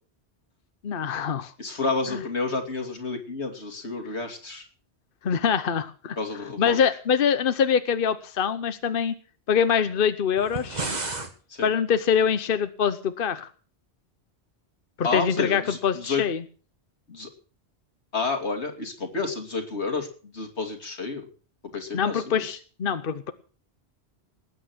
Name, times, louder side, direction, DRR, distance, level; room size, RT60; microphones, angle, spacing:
voice 1, 0.8-1.5 2.1-2.2 5.2-6.2 6.6-9.1 9.5-10.9 11.6-13.5 15.0-16.4 21.9-23.3, left 7 dB, 60° left, 11 dB, 1.0 m, -24 dB
voice 2, 1.6-4.6 6.2-6.8 11.5-11.7 15.0-16.2 17.1-17.3 18.1-21.3 21.7-22.5, left 4 dB, 85° left, 5 dB, 2.9 m, -30 dB
sound 1, 10.4-11.3, right 3 dB, 40° right, 1.8 m, -31 dB
19.0 x 9.0 x 6.2 m, 0.41 s
omnidirectional pair, 1.1 m